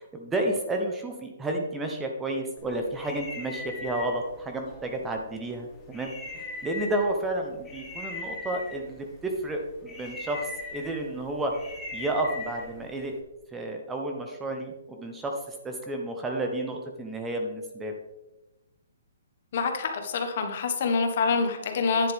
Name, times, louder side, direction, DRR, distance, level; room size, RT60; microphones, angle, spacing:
voice 1, 0.0-11.5 11.9-13.2 13.5-17.9, right 1 dB, 10° right, 2 dB, 0.7 m, -31 dB
sound 1, 2.6-13.2, left 3 dB, 10° left, 1.7 m, -41 dB
voice 2, 19.5-22.1, left 4 dB, 50° left, 5 dB, 1.4 m, -26 dB
9.8 x 7.5 x 3.4 m, 1.0 s
hypercardioid pair, 160°, 0 cm